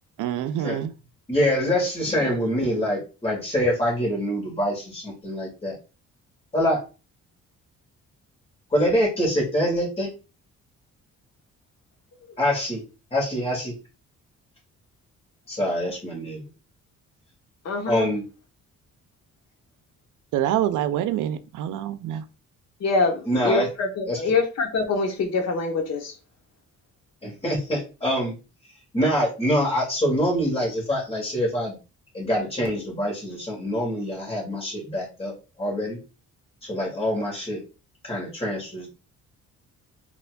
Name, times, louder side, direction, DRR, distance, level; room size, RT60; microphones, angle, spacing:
voice 1, 0.2-0.9 20.3-22.2, right 11 dB, 85° right, 0.5 m, -26 dB
voice 2, 1.3-5.8 6.5-6.8 8.7-10.1 12.4-12.8 13.1-13.7 15.5-16.4 17.9-18.2 23.3-23.7 24.1-24.2 27.2-28.3 28.9-31.8 32.1-35.3 35.6-36.0 36.6-37.6 38.0-38.9, equal, 20° left, 1.9 m, -25 dB
voice 3, 17.6-18.1 22.8-26.1, left 3 dB, 60° left, 1.1 m, -25 dB
4.2 x 2.9 x 2.3 m
cardioid pair, 90°, 30 cm